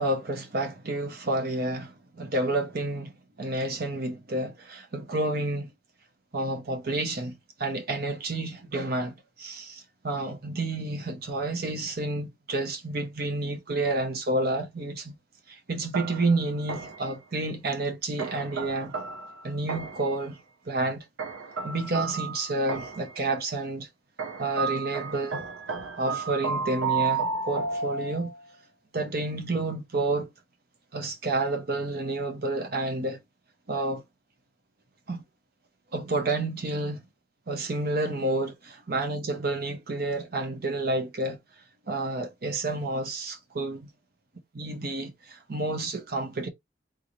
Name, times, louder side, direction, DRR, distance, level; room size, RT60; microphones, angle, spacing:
voice 1, 0.0-3.1 3.4-5.7 6.3-7.3 7.6-15.2 15.5-18.9 19.4-20.4 20.7-21.0 21.6-23.9 24.4-25.4 26.0-28.3 28.9-30.3 30.9-33.2 33.7-34.0 35.1-35.2 35.9-37.0 37.5-41.4 41.9-43.9 44.5-46.5, right 2 dB, 55° right, 0.7 m, -30 dB
sound 1, 15.9-17.1 18.2-20.2 21.2-23.2 24.2-28.5, right 5 dB, 90° right, 0.6 m, -32 dB
3.8 x 2.6 x 3.0 m
head